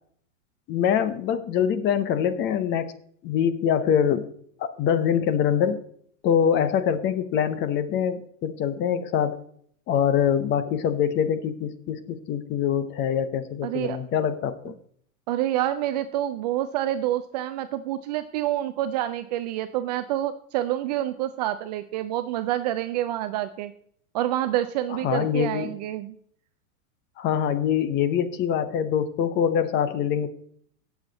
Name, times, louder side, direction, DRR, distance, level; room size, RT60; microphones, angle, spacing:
voice 1, 0.7-3.0 3.2-4.3 4.6-5.8 6.2-9.4 9.9-14.8 25.0-25.7 27.2-30.3, left 8 dB, 25° left, 13 dB, 0.8 m, -24 dB
voice 2, 13.6-14.0 15.3-23.7 24.1-26.1, right 13 dB, 30° right, 10 dB, 0.4 m, -27 dB
17.0 x 7.3 x 4.0 m, 0.63 s
hypercardioid pair, 140°, 42 cm